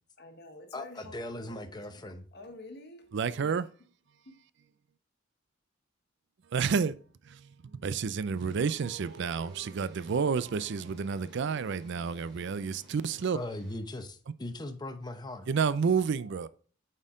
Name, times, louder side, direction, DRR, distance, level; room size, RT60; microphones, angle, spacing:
voice 1, 0.2-1.1 1.5-3.6 4.2-4.4, left 2 dB, 55° left, 1.3 m, -50 dB
voice 2, 0.7-2.2 13.3-15.5, left 1 dB, 20° left, 0.7 m, -39 dB
voice 3, 3.1-3.7 6.5-7.0 7.3-13.4 15.5-16.5, right 6 dB, 60° right, 0.4 m, -30 dB
sound 1, 8.4-13.8, right 1 dB, ahead, 3.1 m, -57 dB
8.8 x 4.4 x 3.6 m
head